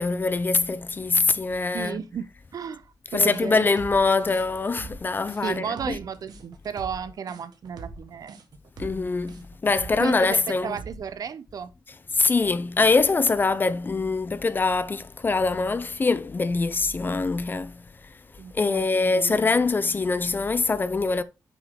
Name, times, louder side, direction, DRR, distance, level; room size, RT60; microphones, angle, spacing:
voice 1, 0.0-2.0 3.1-6.0 8.8-10.8 12.1-17.8 18.5-21.2, left 3 dB, 30° left, 0.4 m, -23 dB
voice 2, 1.7-2.3 2.5-3.8 5.4-8.4 10.0-11.7 18.4-19.4, right 7 dB, 60° right, 0.6 m, -33 dB
sound 1, 3.3-11.1, right 4 dB, 80° right, 1.3 m, -42 dB
6.0 x 5.9 x 3.6 m
wide cardioid pair, 130°, 7 cm